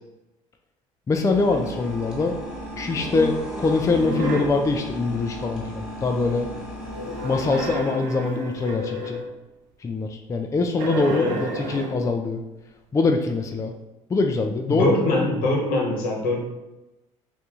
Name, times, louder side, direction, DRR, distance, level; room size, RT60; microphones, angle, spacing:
voice 1, 1.1-2.4 2.8-6.5 7.2-9.2 9.8-12.4 12.9-13.7 14.1-14.9, left 3 dB, 20° left, 4 dB, 0.3 m, -23 dB
sound 1, 1.3-7.9, equal, 5° right, 1.1 m, -34 dB
sound 2, 3.8-4.6 6.8-9.4 10.7-12.1, right 1 dB, 75° right, 0.6 m, -32 dB
voice 2, 14.7-16.4, left 2 dB, 70° left, -1 dB, 1.0 m, -22 dB
2.7 x 2.5 x 3.5 m, 1.0 s
hypercardioid pair, 65°, 15 cm